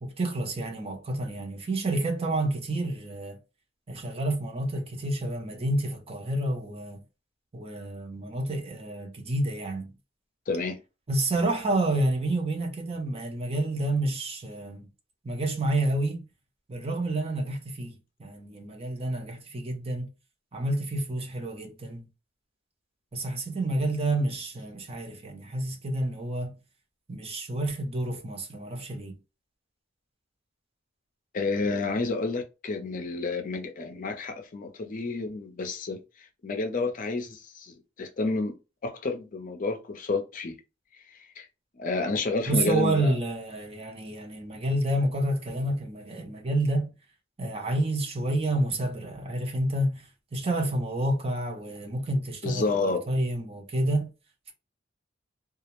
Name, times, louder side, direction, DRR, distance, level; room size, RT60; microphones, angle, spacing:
voice 1, 0.0-3.4 3.9-7.0 7.5-9.9 11.1-14.9 15.2-16.2 16.7-20.1 20.5-22.0 23.1-26.6 27.1-29.2 42.5-46.9 47.4-50.0 50.3-54.1, right 1 dB, 30° right, 0.6 m, -29 dB
voice 2, 10.5-10.8 31.3-36.0 36.4-38.5 38.8-40.5 41.4-41.5 41.8-43.1 52.4-53.0, left 3 dB, 45° left, 0.5 m, -30 dB
2.3 x 2.0 x 2.9 m
head